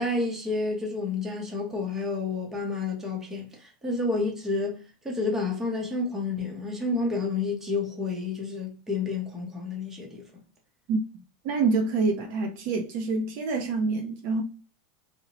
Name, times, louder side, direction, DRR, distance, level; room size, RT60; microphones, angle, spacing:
voice 1, 0.0-4.8 5.0-10.4, left 3 dB, 10° right, 0.7 m, -30 dB
voice 2, 10.9-14.4, right 3 dB, 45° right, 0.4 m, -27 dB
2.7 x 2.0 x 2.8 m
supercardioid pair, 160°, 4 cm